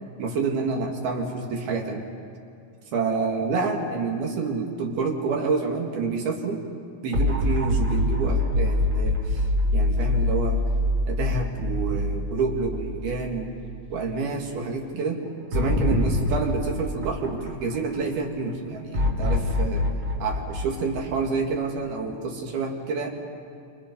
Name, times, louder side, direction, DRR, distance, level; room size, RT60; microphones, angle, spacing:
voice 1, 0.2-2.0 2.9-6.6 7.0-9.4 9.7-10.6 11.1-13.6 13.9-15.2 15.5-19.9 20.2-23.1, right 4 dB, 55° right, 0 dB, 3.7 m, -28 dB
sound 1, 7.1-13.5 13.8-13.9 15.5-18.0 18.9-21.7, left 1 dB, 35° right, 2.1 m, -25 dB
29.0 x 27.0 x 5.4 m, 2.4 s
omnidirectional pair, 5.6 m